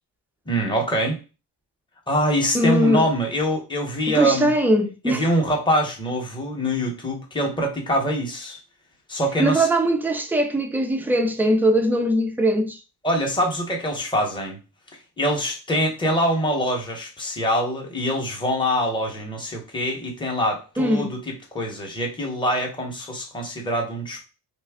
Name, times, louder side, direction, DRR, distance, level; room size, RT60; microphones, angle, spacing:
voice 1, 0.5-1.2 2.1-4.5 5.0-8.6 9.1-9.7 13.0-14.6 15.2-24.2, equal, 10° left, 0.8 m, -24 dB
voice 2, 2.5-3.0 4.1-5.3 9.4-12.8 20.8-21.1, equal, 5° right, 0.3 m, -21 dB
3.1 x 2.3 x 3.4 m
cardioid pair, 120°, 44 cm